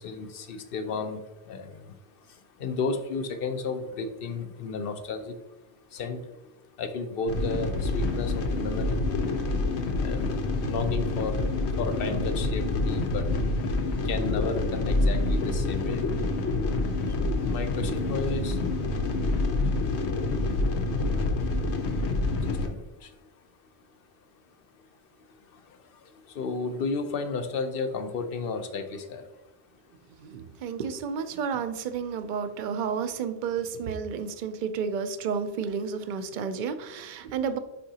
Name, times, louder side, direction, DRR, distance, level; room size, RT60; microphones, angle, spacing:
voice 1, 0.0-9.1 9.5-13.4 14.0-16.5 17.1-19.1 19.4-19.9 20.2-21.3 21.7-21.8 22.3-23.3 24.6-24.9 25.2-29.4, left 4 dB, 65° left, 8 dB, 0.8 m, -34 dB
sound 1, 7.3-22.7, left 2 dB, 85° left, 1.1 m, -27 dB
voice 2, 30.1-37.6, right 6 dB, 55° right, 10 dB, 0.6 m, -31 dB
9.5 x 3.7 x 2.8 m, 1.1 s
omnidirectional pair, 1.1 m